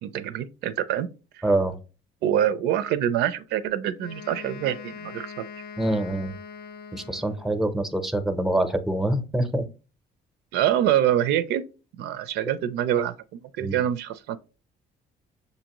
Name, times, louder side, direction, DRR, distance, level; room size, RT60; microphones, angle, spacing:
voice 1, 0.0-1.1 1.4-1.5 2.2-5.4 10.5-11.6 12.0-13.1 13.6-14.4, right 11 dB, 80° right, 0.4 m, -25 dB
voice 2, 1.4-1.8 5.8-6.3 6.9-9.7 13.6-13.7, right 1 dB, ahead, 0.6 m, -25 dB
Wind instrument woodwind instrument, 4.0-7.7, left 7 dB, 70° left, 0.6 m, -42 dB
6.8 x 2.6 x 2.9 m
cardioid pair, 110°, 17 cm